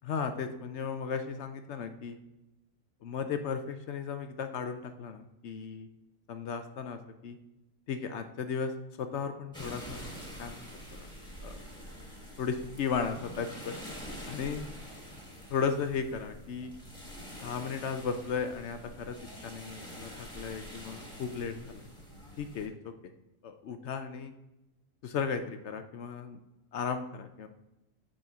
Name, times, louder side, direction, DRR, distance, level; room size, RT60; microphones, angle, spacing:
voice 1, 0.0-2.2 3.0-5.9 6.3-7.4 7.9-10.7 10.9-11.1 11.4-11.6 12.4-13.8 14.3-14.6 15.5-16.7 17.4-19.2 19.4-21.8 22.4-22.9 23.4-24.3 25.0-26.4 26.7-27.5, left 6 dB, 65° left, 8 dB, 0.7 m, -35 dB
sound 1, 9.5-22.7, equal, 5° left, 1.4 m, -46 dB
8.8 x 4.4 x 3.5 m, 0.94 s
omnidirectional pair, 1.6 m